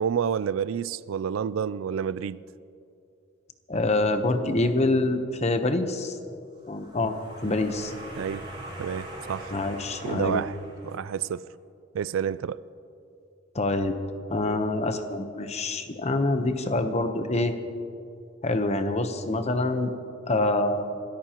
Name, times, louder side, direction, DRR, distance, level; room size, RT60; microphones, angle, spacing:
voice 1, 0.0-2.4 8.2-8.4 8.8-9.6 10.0-10.6 10.8-11.5 11.9-12.6, right 7 dB, 75° right, 0.3 m, -29 dB
voice 2, 3.7-6.2 6.7-7.1 7.4-7.9 9.5-10.4 13.5-13.9 14.3-17.5 18.4-19.9 20.3-21.0, left 2 dB, 35° left, 0.9 m, -26 dB
sound 1, 6.6-11.3, right 1 dB, 25° right, 4.3 m, -42 dB
25.5 x 14.0 x 3.0 m
head